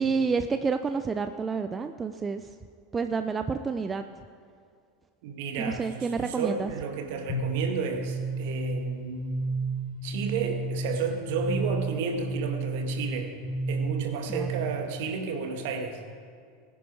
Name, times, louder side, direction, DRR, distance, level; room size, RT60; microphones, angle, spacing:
voice 1, 0.0-2.5 2.9-4.1 5.6-6.7 14.3-14.5, right 5 dB, 20° right, 9 dB, 0.6 m, -29 dB
voice 2, 5.2-9.4 10.0-13.3 13.7-16.0, right 5 dB, 60° right, 4 dB, 1.9 m, -32 dB
sound 1, 7.3-14.9, right 3 dB, 30° left, 4.0 m, -32 dB
21.5 x 9.4 x 4.7 m, 2.2 s
figure-of-eight pair, 80°, 0 cm